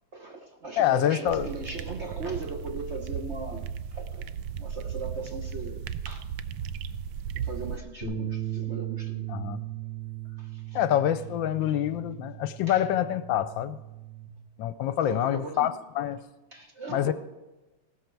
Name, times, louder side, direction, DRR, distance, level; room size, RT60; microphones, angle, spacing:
voice 1, 0.1-4.3 4.6-6.3 7.3-9.4 10.4-10.8 12.7-12.9 15.0-15.8 16.5-17.1, right 3 dB, 45° right, 4 dB, 1.0 m, -39 dB
voice 2, 0.8-1.5 9.3-9.6 10.7-13.8 14.6-16.2 16.9-17.1, left 11 dB, 75° left, 13 dB, 1.3 m, -26 dB
sound 1, 1.3-7.8, right 8 dB, 80° right, 1.4 m, -35 dB
sound 2, 8.0-14.3, right 11 dB, 60° right, 5.2 m, -37 dB
17.0 x 13.0 x 4.6 m, 1.1 s
omnidirectional pair, 2.2 m